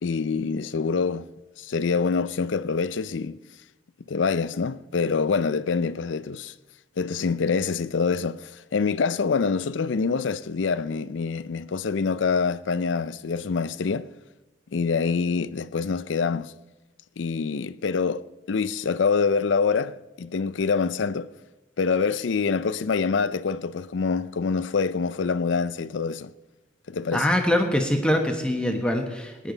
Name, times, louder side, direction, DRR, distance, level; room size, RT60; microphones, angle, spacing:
voice 1, 0.0-1.3 1.6-3.4 4.1-6.5 7.0-14.1 14.7-16.5 17.2-21.3 21.8-26.3 26.9-27.3, left 5 dB, 75° left, 0.5 m, -25 dB
voice 2, 27.1-29.5, left 1 dB, 5° left, 1.2 m, -23 dB
20.0 x 10.0 x 4.0 m
head